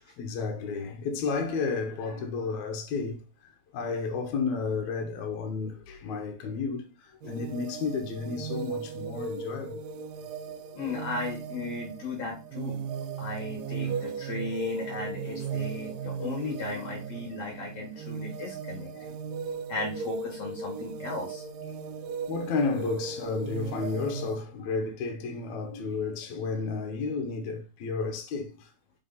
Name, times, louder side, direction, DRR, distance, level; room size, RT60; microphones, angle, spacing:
voice 1, 0.0-9.8 13.8-14.0 16.0-16.4 18.6-19.1 22.3-28.7, left 4 dB, 75° left, 2.2 m, -32 dB
sound 1, 7.2-24.4, right 5 dB, 75° right, 1.6 m, -37 dB
voice 2, 10.7-12.8 13.2-18.9 19.7-21.4, left 3 dB, 50° left, 3.9 m, -36 dB
7.5 x 3.4 x 4.0 m
omnidirectional pair, 3.5 m